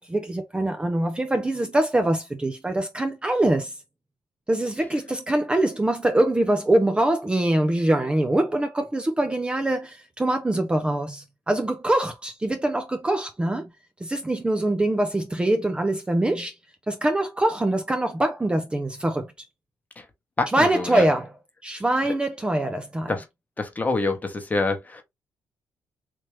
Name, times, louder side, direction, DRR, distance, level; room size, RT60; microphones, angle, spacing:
voice 1, 0.0-3.8 4.5-13.7 14.0-16.5 16.9-19.3 20.5-21.3 21.6-23.1, right 1 dB, 15° right, 0.6 m, -23 dB
voice 2, 20.4-21.1 23.1-23.2 23.6-25.0, left 3 dB, 25° left, 1.1 m, -26 dB
3.4 x 2.8 x 3.1 m
cardioid pair, 85°, 7 cm